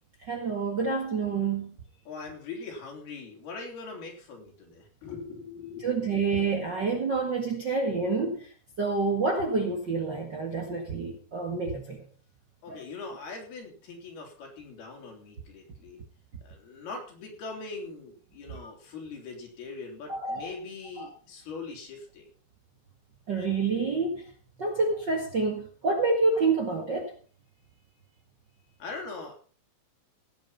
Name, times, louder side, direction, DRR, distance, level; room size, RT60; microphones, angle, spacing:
voice 1, 0.3-1.8 5.8-8.5 8.8-12.0 12.7-12.8 20.1-20.5 21.0-21.1 23.3-24.2 24.6-27.1, right 4 dB, 40° right, 1 dB, 1.6 m, -28 dB
voice 2, 2.1-6.2 12.6-16.0 16.4-22.3 28.8-29.3, left 4 dB, 70° left, 1 dB, 5.5 m, -41 dB
17.5 x 8.2 x 5.6 m, 0.41 s
omnidirectional pair, 4.5 m